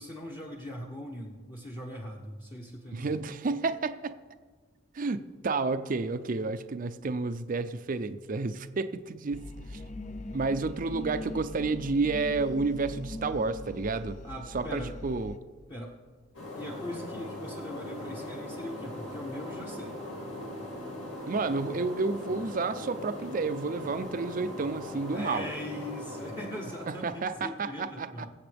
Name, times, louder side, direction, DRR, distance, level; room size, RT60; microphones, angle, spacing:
voice 1, 0.0-3.2 14.2-15.0 15.7-15.9 16.5-20.0 25.1-28.3, left 1 dB, 25° left, 0 dB, 0.9 m, -40 dB
voice 2, 2.9-4.1 4.9-9.8 10.3-14.2 14.5-15.3 21.3-25.5 26.9-28.1, right 3 dB, 45° right, 11 dB, 0.5 m, -30 dB
sound 1, 9.3-15.4, left 2 dB, 40° left, 0.5 m, -41 dB
sound 2, 16.3-27.4, left 1 dB, 75° left, 2.7 m, -40 dB
23.0 x 7.8 x 3.4 m, 1.5 s
head